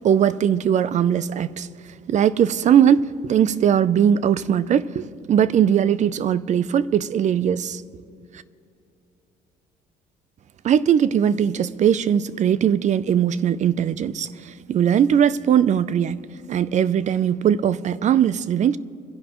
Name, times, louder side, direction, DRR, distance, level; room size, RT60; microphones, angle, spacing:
voice 1, 0.0-1.7 2.1-7.8 10.6-16.2 16.5-18.8, right 9 dB, 45° right, 0.5 m, -20 dB
27.0 x 11.0 x 3.0 m
cardioid pair, 110°, 17 cm